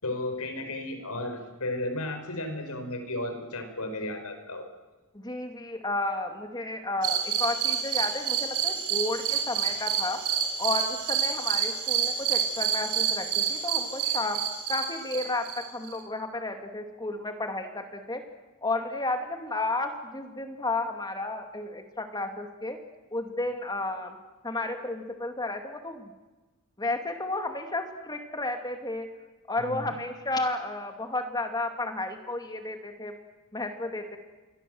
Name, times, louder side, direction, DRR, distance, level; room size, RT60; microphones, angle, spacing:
voice 1, 0.0-4.6 29.5-29.9, left 1 dB, 85° left, 7 dB, 4.9 m, -34 dB
voice 2, 5.1-10.2 10.6-14.4 14.7-18.2 18.6-22.8 23.1-24.2 24.4-26.1 26.8-29.1 29.5-33.1 33.5-34.2, left 2 dB, 20° left, 5 dB, 2.4 m, -32 dB
sound 1, 7.0-16.0, right 8 dB, 85° right, 4.4 m, -28 dB
28.0 x 23.0 x 7.8 m, 1.2 s
head